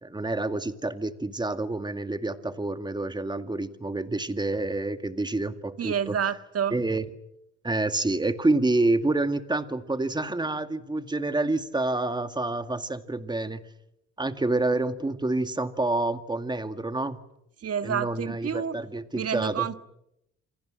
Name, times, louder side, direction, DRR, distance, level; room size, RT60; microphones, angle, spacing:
voice 1, 0.0-6.2 6.7-7.1 7.6-13.6 14.2-17.2 17.8-19.7, right 2 dB, 15° right, 2.1 m, -28 dB
voice 2, 5.8-6.8 17.6-18.7 19.1-19.8, right 8 dB, 50° right, 1.7 m, -29 dB
28.5 x 24.5 x 7.7 m
cardioid pair, 90°, 30 cm